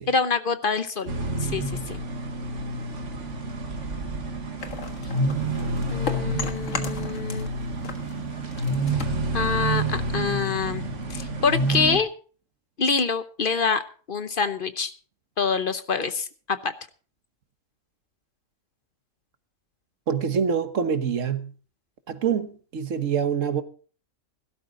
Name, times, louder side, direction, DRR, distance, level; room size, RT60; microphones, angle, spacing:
voice 1, 0.1-1.1 1.4-2.0 5.9-7.5 9.3-10.8 11.1-12.1 12.8-13.8 14.1-14.9 15.4-16.7, left 5 dB, 50° left, 1.0 m, -26 dB
sound 1, 1.1-12.0, right 2 dB, 70° right, 1.9 m, -29 dB
sound 2, 4.6-7.5 7.8-10.2, left 5 dB, 90° left, 1.9 m, -36 dB
voice 2, 20.1-21.5 22.1-23.6, right 7 dB, 85° right, 1.5 m, -25 dB
16.5 x 12.5 x 3.8 m
omnidirectional pair, 1.3 m